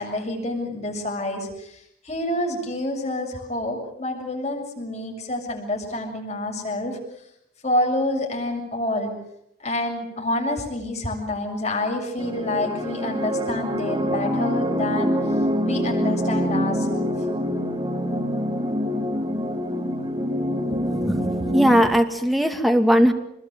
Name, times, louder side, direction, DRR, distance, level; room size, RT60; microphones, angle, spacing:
voice 1, 0.0-7.0 7.6-9.1 9.6-15.4 15.6-17.1, left 1 dB, 35° left, 1 dB, 7.1 m, -28 dB
sound 1, 12.2-21.8, equal, 25° right, 2.9 m, -25 dB
voice 2, 20.9-23.1, equal, ahead, 4 dB, 2.2 m, -19 dB
27.5 x 21.0 x 9.3 m, 0.77 s
head